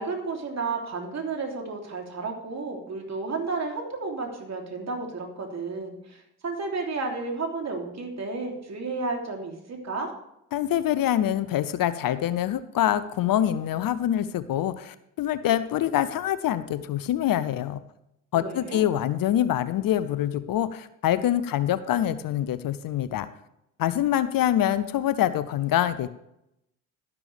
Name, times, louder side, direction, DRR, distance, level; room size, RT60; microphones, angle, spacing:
voice 1, 0.0-10.1 18.3-18.8, right 3 dB, 40° right, 1 dB, 3.2 m, -32 dB
voice 2, 10.5-17.8 18.3-23.3 23.8-26.1, left 11 dB, 55° left, 14 dB, 0.8 m, -25 dB
12.0 x 10.5 x 3.4 m, 0.81 s
hypercardioid pair, 55°, 42 cm